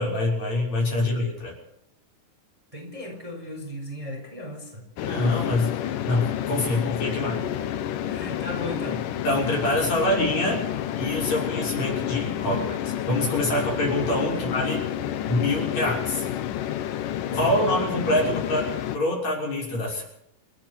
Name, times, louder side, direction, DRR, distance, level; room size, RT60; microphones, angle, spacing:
voice 1, 0.0-1.5 5.0-7.4 9.2-10.6 10.9-14.8 15.3-16.3 17.3-20.0, left 1 dB, 50° left, -2 dB, 7.6 m, -25 dB
voice 2, 0.8-1.3 2.7-4.9 6.6-6.8 7.1-7.4 8.1-9.1 14.1-14.7 17.3-17.6, left 1 dB, 10° right, 1 dB, 4.5 m, -37 dB
sound 1, 5.0-19.0, left 11 dB, 75° left, 2.7 m, -29 dB
30.0 x 10.0 x 8.5 m, 0.76 s
omnidirectional pair, 3.9 m